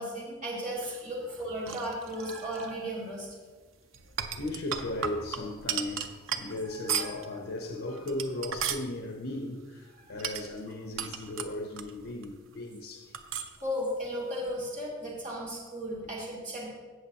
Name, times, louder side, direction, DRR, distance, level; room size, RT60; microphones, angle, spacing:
voice 1, 0.0-3.3 6.7-7.1 10.1-10.2 13.6-16.7, equal, 40° right, 2.8 m, -35 dB
sound 1, 0.8-2.7 3.9-7.3 7.9-8.9 10.2-12.3 12.5-12.6 13.1-13.6, right 7 dB, 85° right, 0.7 m, -36 dB
voice 2, 4.4-13.1, left 1 dB, 75° left, 0.9 m, -36 dB
16.5 x 6.3 x 2.9 m
head